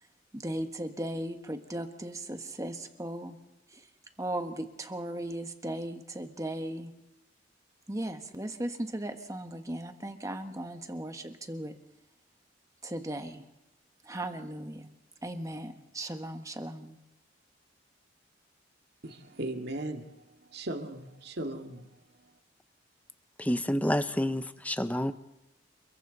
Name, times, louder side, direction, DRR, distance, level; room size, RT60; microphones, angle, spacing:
voice 1, 0.3-3.4 3.7-3.9 4.2-6.9 7.9-11.8 12.8-13.4 14.0-14.9 15.2-17.0, right 1 dB, 15° right, 1.5 m, -37 dB
voice 2, 19.0-21.9 22.2-22.3, right 1 dB, 55° right, 2.1 m, -38 dB
voice 3, 23.4-25.1, left 1 dB, 10° left, 0.8 m, -29 dB
29.0 x 22.5 x 4.0 m
head